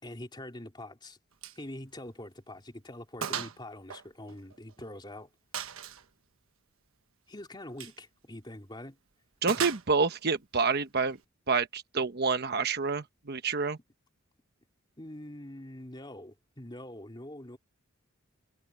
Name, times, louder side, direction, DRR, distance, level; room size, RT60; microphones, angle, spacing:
voice 1, 0.0-1.2 1.5-5.3 7.3-9.0 15.0-17.6, left 1 dB, 20° left, 3.2 m, -44 dB
Gunshot gunfire, 1.4-1.6 2.0-2.1 2.5-2.6 3.2-3.6 3.9-4.9 5.5-6.0 7.7-8.0 9.5-10.2, right 8 dB, 75° right, 1.2 m, -36 dB
voice 2, 9.4-11.2 11.5-13.8, right 4 dB, 50° right, 1.1 m, -28 dB
head